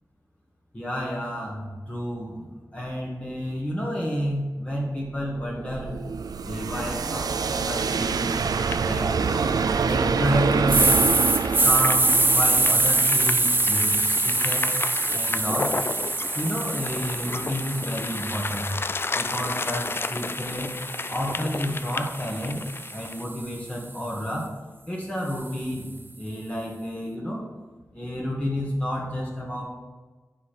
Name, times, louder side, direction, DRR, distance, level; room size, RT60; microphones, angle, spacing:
voice 1, 0.7-6.0 6.4-9.3 9.8-11.0 11.6-14.8 15.1-15.8 16.3-18.7 19.1-20.7 21.1-22.6 22.9-24.5 24.9-25.9 26.2-27.5 27.9-29.6, equal, 20° left, -3 dB, 1.5 m, -30 dB
sound 1, 5.0-14.0, right 5 dB, 90° right, 0.4 m, -26 dB
sound 2, 7.8-23.2, left 3 dB, 35° left, 0.3 m, -34 dB
sound 3, 10.7-18.7 19.2-23.4, right 2 dB, 30° right, 0.5 m, -25 dB
10.5 x 4.9 x 4.5 m, 1.3 s
wide cardioid pair, 100°, 6 cm